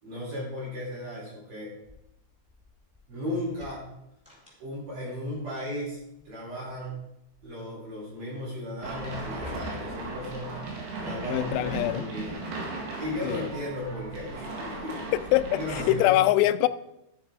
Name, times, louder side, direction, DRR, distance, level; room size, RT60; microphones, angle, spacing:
voice 1, 0.0-1.7 3.1-3.9 4.6-6.0 6.2-6.9 7.4-15.1 15.5-16.1, left 1 dB, 50° right, -5 dB, 4.4 m, -36 dB
sound 1, 1.8-3.1 3.4-5.0 5.3-6.3 6.7-7.5 8.0-8.1 8.8-10.2 11.2-11.3 11.7-12.3, left 3 dB, ahead, 3.8 m, -46 dB
sound 2, 8.8-16.0, right 2 dB, 65° right, 3.7 m, -37 dB
voice 2, 11.3-12.1 13.2-13.4 15.1-16.7, left 15 dB, 85° left, 11 dB, 2.4 m, -24 dB
13.0 x 7.1 x 4.9 m, 0.83 s
omnidirectional pair, 5.4 m